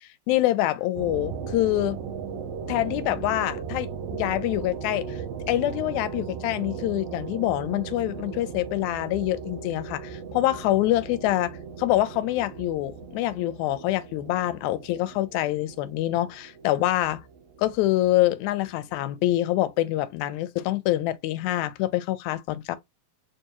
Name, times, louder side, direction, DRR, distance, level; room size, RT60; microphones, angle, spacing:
voice 1, 0.0-2.0 2.7-5.2 5.5-17.2 17.6-22.8, left 15 dB, 80° left, 1.9 m, -26 dB
sound 1, 1.0-18.4, right 6 dB, 75° right, 1.5 m, -37 dB
4.7 x 2.6 x 2.8 m
omnidirectional pair, 3.4 m